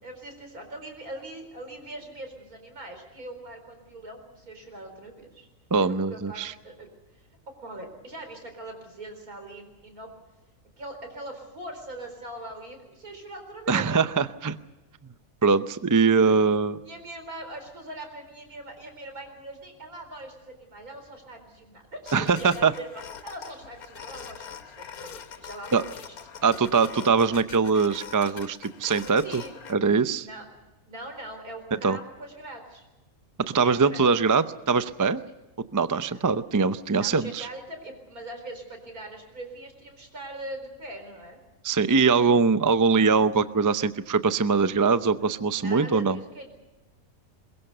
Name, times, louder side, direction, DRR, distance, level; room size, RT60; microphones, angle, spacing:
voice 1, 0.0-5.5 5.8-6.9 7.1-10.1 10.8-14.0 16.8-26.2 29.2-29.6 30.2-30.5 30.9-32.8 33.6-34.1 36.1-36.2 37.0-41.4 45.6-46.5, right 1 dB, 80° right, 5 dB, 4.8 m, -41 dB
voice 2, 5.7-6.5 13.7-14.6 15.4-16.8 22.1-22.7 25.7-25.8 26.4-29.4 29.7-30.3 31.8-32.0 33.4-35.2 35.7-37.5 41.6-46.2, right 5 dB, 30° right, 12 dB, 0.3 m, -22 dB
sound 1, 22.1-29.8, left 7 dB, 80° left, 1.6 m, -43 dB
22.0 x 22.0 x 6.8 m, 1.0 s
omnidirectional pair, 1.5 m